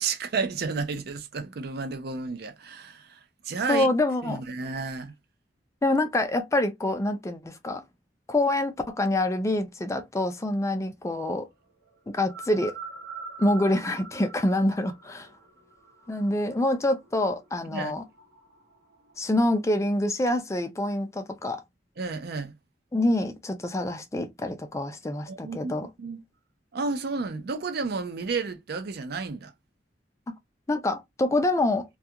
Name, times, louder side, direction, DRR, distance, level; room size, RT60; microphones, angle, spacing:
voice 1, 0.0-3.2 3.4-3.9 4.2-5.1 17.7-17.9 22.0-22.6 25.3-26.2 26.7-29.5, right 4 dB, 60° right, 0.5 m, -31 dB
voice 2, 3.7-4.4 5.8-7.8 8.3-11.5 12.1-12.7 13.4-15.3 16.1-18.0 19.2-21.6 22.9-25.9 30.3-30.4 30.7-31.8, left 1 dB, 15° left, 0.4 m, -26 dB
sound 1, 11.7-19.3, right 4 dB, 80° right, 0.9 m, -45 dB
2.3 x 2.3 x 2.7 m
head